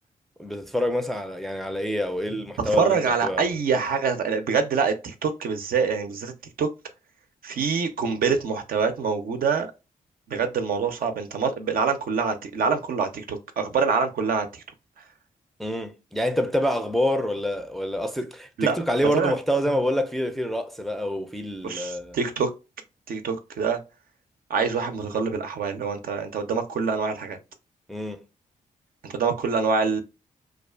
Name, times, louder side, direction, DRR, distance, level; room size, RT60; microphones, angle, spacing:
voice 1, 0.4-3.5 15.6-22.2 27.9-28.2, equal, ahead, 0.4 m, -27 dB
voice 2, 2.6-6.3 6.6-6.7 7.4-9.7 10.3-14.5 18.6-18.8 19.1-19.3 21.6-22.5 23.1-23.8 24.5-27.4 29.0-30.0, right 5 dB, 65° right, 0.5 m, -25 dB
2.3 x 2.3 x 2.2 m
supercardioid pair, 50°, 16 cm